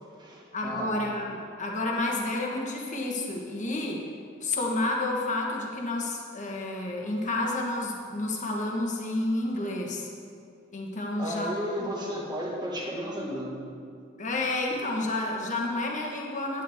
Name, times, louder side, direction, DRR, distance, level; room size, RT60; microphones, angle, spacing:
voice 1, 0.0-1.0 11.2-13.6, equal, 20° right, -2 dB, 1.6 m, -34 dB
voice 2, 0.5-4.0 4.4-10.1 10.7-11.5 14.2-16.6, left 2 dB, 40° left, -1 dB, 1.4 m, -30 dB
10.0 x 9.8 x 3.6 m, 2.4 s
head